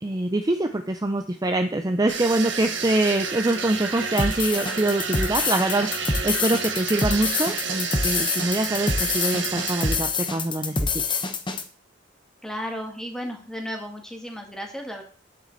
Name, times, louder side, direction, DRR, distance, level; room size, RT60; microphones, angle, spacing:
voice 1, 0.0-11.2, right 2 dB, 20° right, 7 dB, 0.6 m, -25 dB
sound 1, 2.1-10.0, right 6 dB, 70° right, 1.7 m, -30 dB
Drum loop, 4.2-11.6, left 4 dB, 25° left, 1.1 m, -26 dB
voice 2, 12.4-15.0, equal, 5° left, 2 dB, 2.0 m, -34 dB
9.6 x 8.1 x 4.1 m, 0.39 s
head